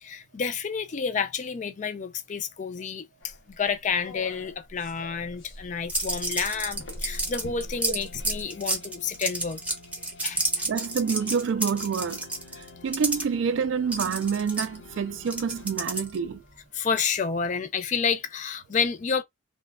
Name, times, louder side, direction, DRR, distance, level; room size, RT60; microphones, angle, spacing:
voice 1, 0.0-9.6 10.2-10.4 16.7-19.2, left 6 dB, 40° left, 0.3 m, -30 dB
sound 1, 3.2-8.4, equal, 70° left, 0.9 m, -42 dB
sound 2, 5.9-13.2 13.9-16.3, right 2 dB, 5° right, 0.6 m, -29 dB
sound 3, 6.0-16.6, left 4 dB, 85° left, 0.6 m, -50 dB
voice 2, 10.6-12.3 12.8-16.4, right 6 dB, 75° right, 0.3 m, -27 dB
3.0 x 2.1 x 2.3 m
head